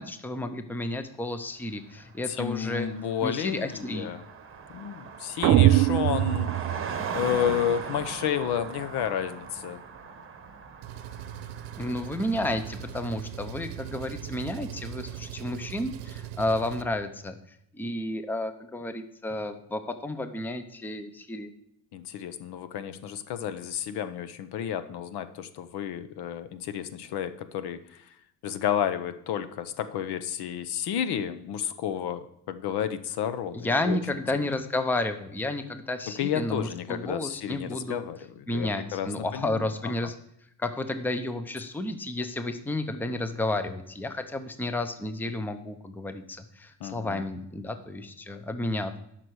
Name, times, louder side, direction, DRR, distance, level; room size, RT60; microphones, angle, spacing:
voice 1, 0.0-2.9 3.2-4.1 11.8-17.4 17.7-21.5 33.5-38.0 38.5-40.2 40.6-49.0, left 2 dB, 5° left, 9 dB, 0.7 m, -31 dB
Car passing by, 1.9-2.0 2.2-13.2, right 5 dB, 30° right, 1.3 m, -39 dB
voice 2, 2.3-4.2 4.7-6.5 7.1-9.8 21.9-28.0 28.4-34.5 36.2-39.6 46.8-47.2, left 9 dB, 65° left, 12 dB, 0.9 m, -31 dB
sound 1, 5.4-7.6, right 14 dB, 50° right, 0.5 m, -22 dB
Engine, 10.8-16.8, right 11 dB, 90° right, 0.8 m, -40 dB
12.5 x 6.0 x 4.8 m, 0.75 s
cardioid pair, 105°, 43 cm